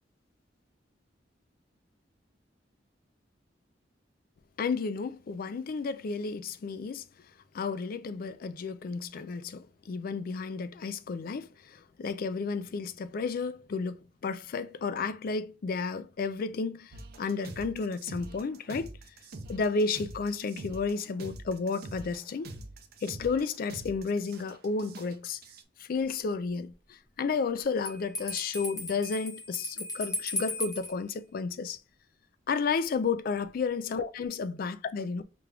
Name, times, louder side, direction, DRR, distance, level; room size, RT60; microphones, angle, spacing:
voice 1, 4.6-7.0 7.5-16.9 17.2-18.9 19.5-22.5 23.0-25.4 25.8-26.7 27.2-31.8 32.5-35.2, left 4 dB, 55° left, 0.3 m, -32 dB
sound 1, 16.9-25.6, right 2 dB, 55° right, 0.6 m, -45 dB
Bell, 27.8-30.9, left 1 dB, 20° left, 0.8 m, -36 dB
5.1 x 2.3 x 3.4 m
head